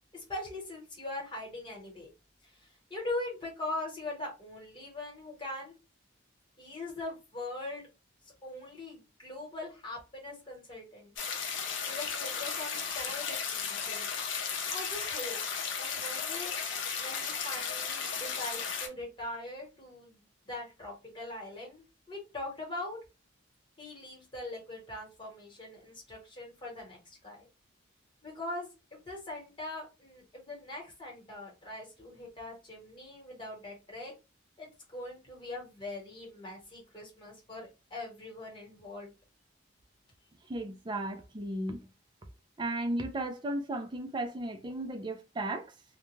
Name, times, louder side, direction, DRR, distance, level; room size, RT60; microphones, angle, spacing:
voice 1, 0.1-2.1 2.4-5.8 6.6-7.9 8.2-11.2 11.8-14.1 14.7-15.4 15.8-16.5 17.0-23.0 23.8-27.5 28.2-34.1 34.6-39.1, left 2 dB, 25° left, 1.2 m, -41 dB
Waterfall Loop, 11.2-18.9, left 6 dB, 70° left, 0.6 m, -35 dB
voice 2, 40.5-41.9 42.6-45.7, right 1 dB, 25° right, 0.4 m, -35 dB
2.4 x 2.1 x 3.0 m
head